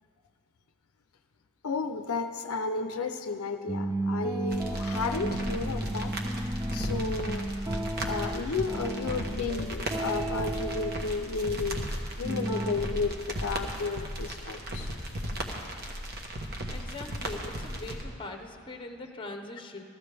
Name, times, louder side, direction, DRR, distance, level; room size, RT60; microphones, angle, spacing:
voice 1, 1.6-11.9 12.2-15.0, left 4 dB, 70° left, 7 dB, 0.5 m, -33 dB
sound 1, 3.7-9.5 9.9-11.0 12.2-12.7, right 2 dB, 15° right, 0.4 m, -33 dB
sound 2, 4.5-18.0, equal, 45° right, 1.1 m, -36 dB
voice 2, 16.7-19.8, left 2 dB, 25° left, 4 dB, 0.8 m, -41 dB
15.0 x 14.0 x 3.4 m, 2.2 s
head